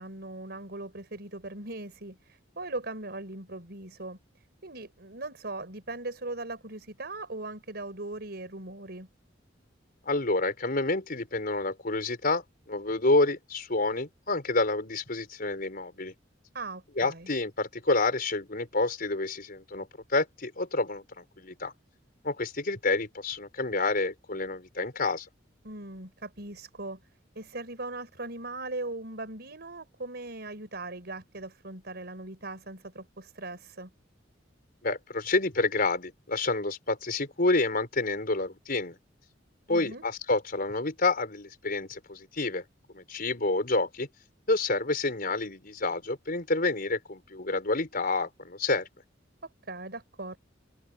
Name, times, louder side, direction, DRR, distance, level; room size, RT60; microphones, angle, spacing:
voice 1, 0.0-9.1 16.5-17.3 25.6-27.0 27.4-33.9 39.7-40.1 49.6-50.4, right 2 dB, 60° right, 5.4 m, -39 dB
voice 2, 10.0-16.1 17.0-21.7 22.2-25.3 34.8-39.0 39.7-42.6 42.9-44.1 44.5-48.9, left 2 dB, 50° left, 4.8 m, -28 dB
open air
head